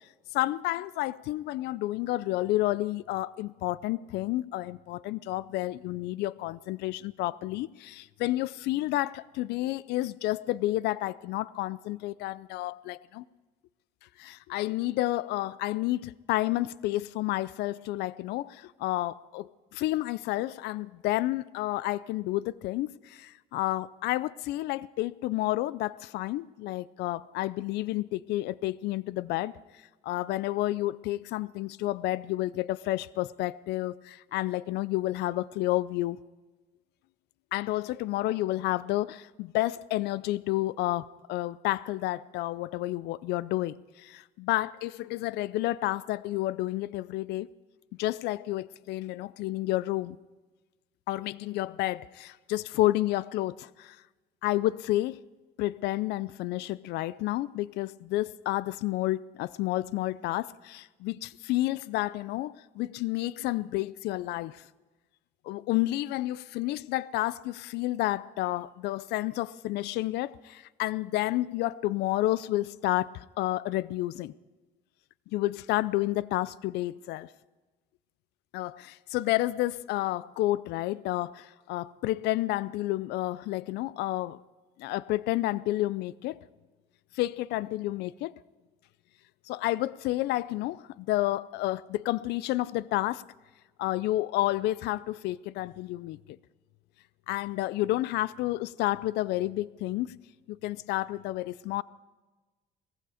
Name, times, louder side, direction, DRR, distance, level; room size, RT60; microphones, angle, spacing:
voice 1, 0.3-13.2 14.2-29.5 30.0-36.2 37.5-47.5 48.0-50.2 51.1-54.0 54.4-55.2 55.6-64.6 65.4-74.3 75.3-77.3 78.5-84.4 84.8-86.4 87.1-88.3 89.5-93.2 93.8-96.4 97.3-100.1 100.5-101.8, left 16 dB, 80° left, 0.5 m, -30 dB
18.5 x 15.0 x 4.9 m
cardioid pair, 110°, 17 cm